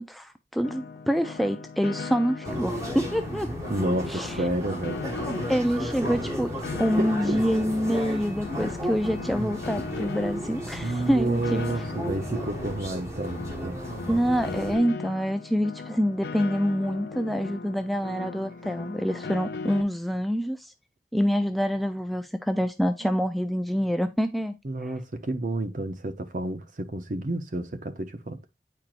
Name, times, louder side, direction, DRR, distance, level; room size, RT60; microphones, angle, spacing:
voice 1, 0.0-3.5 4.1-4.3 5.5-6.5 6.8-11.6 14.1-20.7 21.1-24.5 24.8-24.9, equal, ahead, 0.3 m, -26 dB
Piano, 0.6-19.8, left 4 dB, 65° left, 0.5 m, -38 dB
sound 1, 2.4-14.8, equal, 20° right, 1.4 m, -34 dB
voice 2, 3.7-5.0 7.0-7.5 10.8-13.8 24.6-28.4, right 2 dB, 45° right, 0.7 m, -30 dB
8.9 x 4.5 x 2.5 m
head